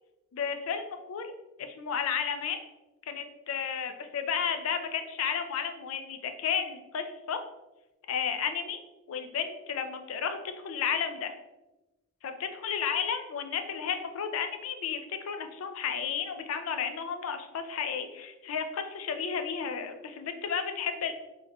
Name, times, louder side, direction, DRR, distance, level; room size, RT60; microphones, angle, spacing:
voice 1, 0.3-1.3 1.6-2.6 3.1-7.4 8.1-8.8 9.1-10.4 10.6-11.3 12.2-21.1, left 7 dB, 70° left, 7 dB, 0.4 m, -32 dB
3.5 x 3.2 x 2.2 m, 1.0 s
head